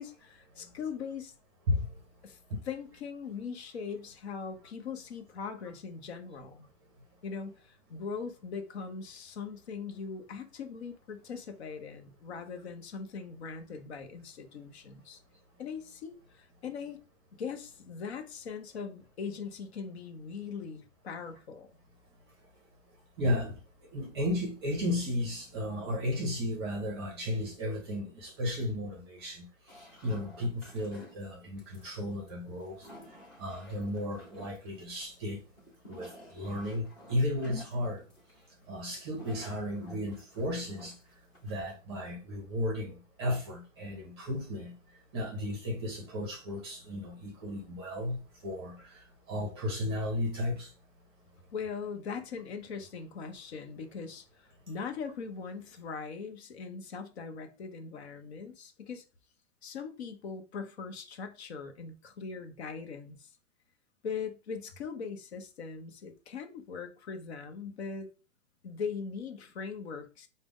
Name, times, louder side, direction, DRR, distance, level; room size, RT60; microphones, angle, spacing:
voice 1, 0.0-1.3 2.2-2.4 2.6-6.7 7.2-15.2 15.6-17.0 17.3-21.7 51.5-59.0 59.6-63.3 64.0-68.1 68.6-70.3, left 5 dB, 55° left, 0.8 m, -40 dB
voice 2, 23.2-23.5 23.9-29.5 30.0-32.9 33.4-35.4 35.9-38.0 38.7-41.0 41.4-44.8 45.1-50.7, left 1 dB, 20° right, 0.7 m, -34 dB
sound 1, 29.7-41.8, equal, 10° left, 0.7 m, -52 dB
4.9 x 2.1 x 3.5 m
hypercardioid pair, 175°, 38 cm